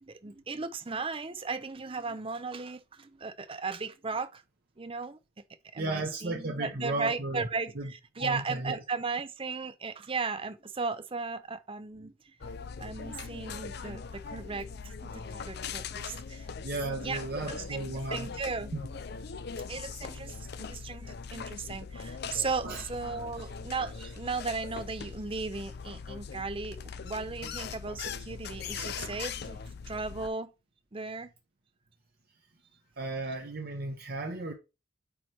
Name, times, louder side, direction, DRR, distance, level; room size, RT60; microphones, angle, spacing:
voice 1, 0.0-4.4 4.8-5.2 5.7-12.3 12.8-16.5 16.9-17.2 17.5-17.8 18.1-18.7 19.7-29.6 29.9-30.5 30.9-31.3, right 4 dB, 25° right, 0.6 m, -36 dB
voice 2, 5.8-7.5 7.7-7.9 8.2-8.8 16.6-18.3 18.7-18.8 22.6-22.8 33.0-34.5, right 2 dB, 50° right, 1.0 m, -34 dB
sound 1, 12.4-30.3, left 5 dB, 50° left, 0.5 m, -41 dB
8.6 x 3.3 x 4.4 m
head